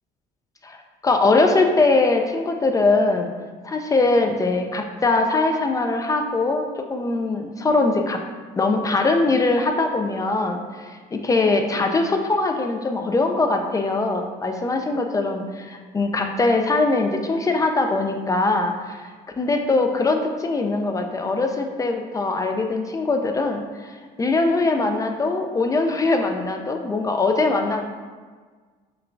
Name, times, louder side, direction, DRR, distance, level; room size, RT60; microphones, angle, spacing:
voice 1, 1.0-3.3 3.6-8.2 8.6-19.1 19.4-23.9 24.2-27.8, left 3 dB, 20° left, 4 dB, 0.3 m, -21 dB
6.0 x 2.3 x 2.5 m, 1.5 s
cardioid pair, 110°, 17 cm